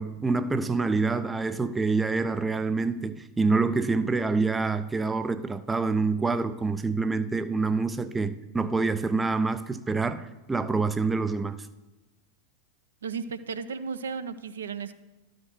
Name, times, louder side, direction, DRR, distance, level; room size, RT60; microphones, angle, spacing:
voice 1, 0.0-11.7, right 4 dB, 10° right, 0.4 m, -26 dB
voice 2, 13.0-15.0, right 5 dB, 65° right, 0.5 m, -34 dB
12.0 x 5.1 x 6.0 m
figure-of-eight pair, 90°, 0 cm